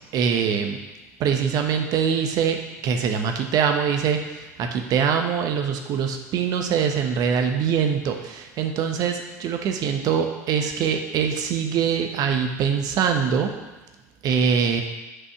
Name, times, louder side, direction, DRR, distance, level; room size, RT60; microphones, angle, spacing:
voice 1, 0.1-0.8 1.2-13.5 14.2-14.8, right 7 dB, 45° right, 5 dB, 1.1 m, -23 dB
6.1 x 5.4 x 6.5 m, 1.1 s
figure-of-eight pair, 70°, 9 cm